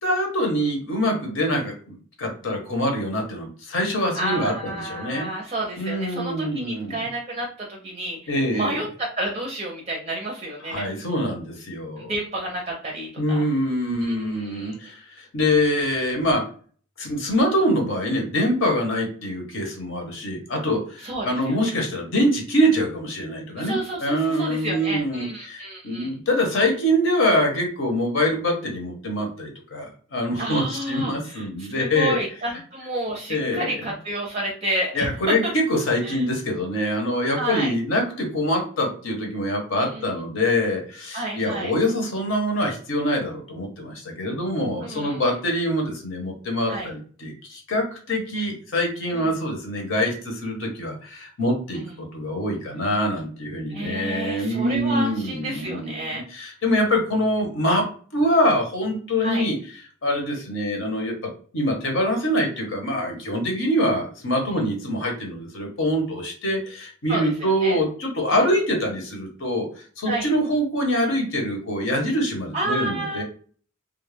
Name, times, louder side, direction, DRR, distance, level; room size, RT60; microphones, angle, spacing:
voice 1, 0.0-5.3 5.8-7.0 8.3-8.8 10.6-12.1 13.2-16.5 17.0-32.2 33.3-33.8 34.9-59.6 60.0-69.7 70.0-73.2, equal, 65° left, 2 dB, 0.8 m, -24 dB
voice 2, 4.1-8.9 9.2-10.9 12.0-13.4 14.0-14.8 21.0-21.7 23.6-26.1 30.4-35.1 35.4-35.5 36.0-36.2 37.4-37.7 39.8-40.1 41.1-41.7 44.8-45.2 46.7-46.9 49.1-49.3 51.7-51.8 53.7-56.2 59.2-59.5 67.1-67.8 68.3-68.4 70.1-70.3 72.5-73.2, right 1 dB, 30° right, 0 dB, 0.4 m, -30 dB
2.3 x 2.1 x 3.2 m, 0.43 s
head